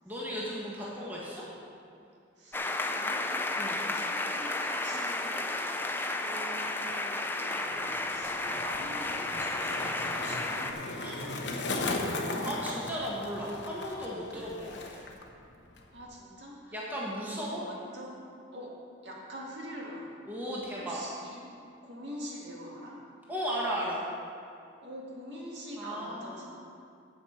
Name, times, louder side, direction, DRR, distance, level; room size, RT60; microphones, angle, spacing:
voice 1, 0.0-1.4 3.6-3.8 11.0-11.2 12.4-15.1 16.7-17.6 20.3-21.0 23.3-24.0 25.8-26.6, equal, 10° right, -6 dB, 1.5 m, -36 dB
voice 2, 2.4-3.4 3.9-5.6 6.1-12.2 14.3-14.5 15.9-18.2 18.5-18.7 19.0-20.1 20.8-21.5 21.8-23.0 24.8-26.6, equal, 65° right, -3 dB, 2.0 m, -45 dB
sound 1, 2.5-10.7, left 2 dB, 10° left, 0.4 m, -32 dB
Skateboard, 7.7-15.3 15.5-16.0, left 2 dB, 65° left, 1.0 m, -37 dB
8.6 x 8.1 x 5.8 m, 2.4 s
head